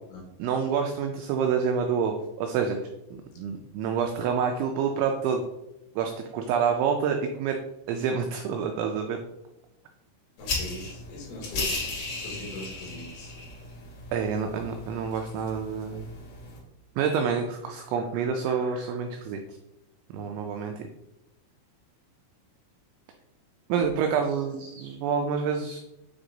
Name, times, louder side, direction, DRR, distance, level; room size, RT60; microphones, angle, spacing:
voice 1, 0.4-2.8 3.1-5.4 6.0-7.6 7.9-9.2 14.1-16.1 17.0-19.4 20.1-20.9 23.7-25.8, right 6 dB, 85° right, 4 dB, 2.6 m, -27 dB
voice 2, 10.4-11.8 12.1-13.3, left 1 dB, 75° left, -2 dB, 4.1 m, -40 dB
sound 1, 10.4-16.6, left 2 dB, 50° left, 3.6 m, -36 dB
9.0 x 3.5 x 3.9 m, 0.90 s
omnidirectional pair, 5.9 m